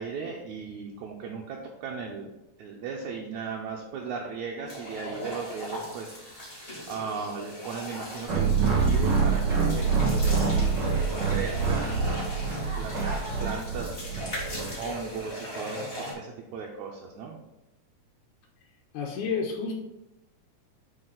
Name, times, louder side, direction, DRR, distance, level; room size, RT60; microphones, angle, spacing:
voice 1, 0.0-2.3 2.6-6.6 6.9-10.8 11.3-12.0 12.7-14.2 14.8-17.4, right 5 dB, 75° right, -1 dB, 2.1 m, -37 dB
sound 1, 4.7-16.1, equal, 20° left, 2.2 m, -39 dB
sound 2, 7.8-13.6, right 1 dB, 30° right, 1.4 m, -42 dB
sound 3, 8.3-14.7, right 5 dB, 45° right, 1.6 m, -26 dB
voice 2, 18.9-19.7, left 5 dB, 75° left, -2 dB, 2.3 m, -30 dB
7.9 x 5.0 x 4.0 m, 0.94 s
omnidirectional pair, 3.5 m